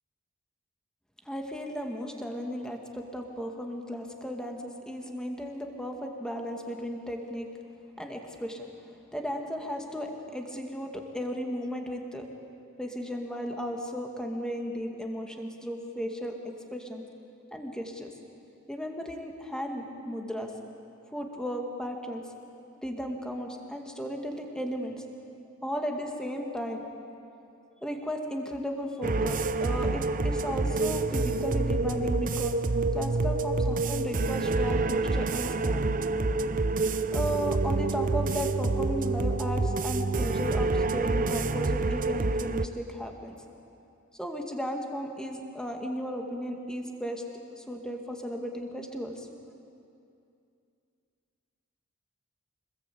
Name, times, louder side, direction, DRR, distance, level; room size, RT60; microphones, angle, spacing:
voice 1, 1.3-7.5 8.0-8.7 9.1-12.2 12.8-16.3 16.7-17.0 17.5-18.1 18.7-20.5 21.1-22.2 22.8-25.0 25.6-26.8 27.8-32.6 32.9-36.1 37.1-43.4 44.1-47.2 47.5-49.3, equal, 5° left, 2 dB, 2.2 m, -35 dB
sound 1, 29.0-42.7, right 3 dB, 40° right, 0.7 m, -27 dB
26.0 x 21.0 x 8.6 m, 2.6 s
head